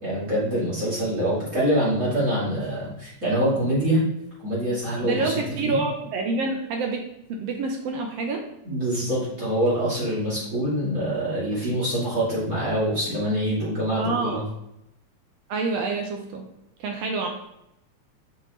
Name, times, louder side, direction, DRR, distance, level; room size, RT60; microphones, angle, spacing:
voice 1, 0.0-4.0 4.4-5.8 8.6-14.4, equal, 25° right, -9 dB, 2.6 m, -25 dB
voice 2, 5.0-7.0 7.3-8.4 14.0-14.4 15.5-16.5 16.8-17.3, right 3 dB, 75° right, 2 dB, 1.5 m, -27 dB
5.8 x 5.6 x 3.0 m, 0.84 s
omnidirectional pair, 3.5 m